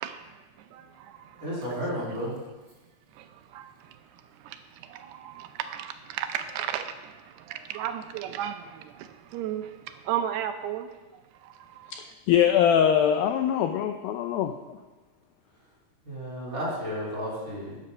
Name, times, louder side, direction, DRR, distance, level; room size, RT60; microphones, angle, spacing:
voice 1, 0.0-1.5 3.1-12.0, right 10 dB, 85° right, 8 dB, 2.8 m, -36 dB
voice 2, 1.4-2.4 16.0-17.8, equal, 20° right, -4 dB, 3.4 m, -32 dB
voice 3, 11.9-14.8, left 9 dB, 80° left, 6 dB, 2.1 m, -23 dB
12.5 x 8.7 x 5.6 m, 1.2 s
omnidirectional pair, 4.7 m